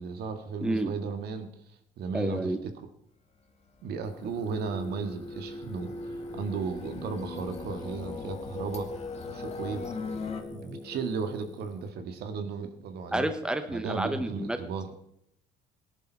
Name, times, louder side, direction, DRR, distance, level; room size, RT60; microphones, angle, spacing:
voice 1, 0.0-2.9 3.8-8.9 9.2-10.0 10.5-13.3 13.7-14.9, right 5 dB, 70° right, 8 dB, 2.0 m, -35 dB
voice 2, 0.6-0.9 2.1-2.6 13.1-14.6, right 1 dB, 5° right, 9 dB, 1.1 m, -29 dB
sound 1, 3.9-10.4, left 5 dB, 40° left, 2.3 m, -42 dB
Singing, 4.0-11.9, left 2 dB, 25° left, 1.5 m, -41 dB
18.0 x 11.0 x 4.7 m, 0.73 s
cardioid pair, 110°, 17 cm